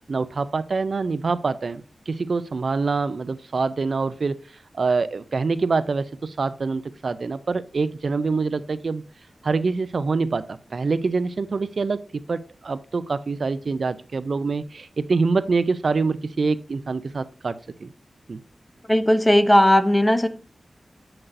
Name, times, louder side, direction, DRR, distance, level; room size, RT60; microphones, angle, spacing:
voice 1, 0.0-4.4 4.7-9.0 9.4-17.5 17.8-17.9 18.3-18.4, right 4 dB, 60° right, 0.3 m, -25 dB
voice 2, 18.9-20.3, left 1 dB, 10° left, 0.6 m, -17 dB
7.7 x 5.9 x 2.6 m
wide cardioid pair, 115°, 0 cm